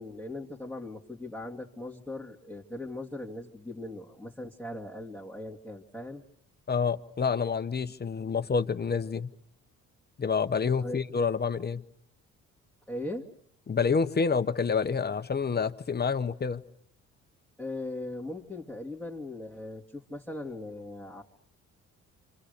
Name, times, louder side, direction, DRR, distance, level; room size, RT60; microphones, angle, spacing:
voice 1, 0.0-6.2 10.8-11.0 12.9-13.3 17.6-21.2, left 2 dB, 5° left, 2.5 m, -39 dB
voice 2, 6.7-9.3 10.2-11.8 13.7-16.6, left 5 dB, 35° left, 1.1 m, -28 dB
27.5 x 26.5 x 6.8 m
cardioid pair, 90°, 30 cm